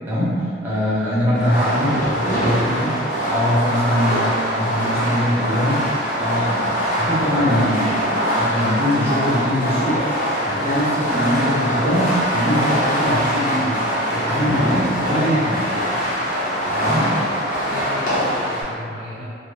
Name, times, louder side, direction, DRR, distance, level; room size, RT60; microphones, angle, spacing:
voice 1, 0.1-5.8 6.2-10.0 10.4-15.7 16.6-17.0, equal, 10° right, -10 dB, 0.6 m, -22 dB
Fireworks, 1.3-18.6, equal, 45° left, 0.7 m, -22 dB
voice 2, 16.9-19.3, equal, 65° right, -8 dB, 0.7 m, -30 dB
2.3 x 2.1 x 3.0 m, 2.2 s
head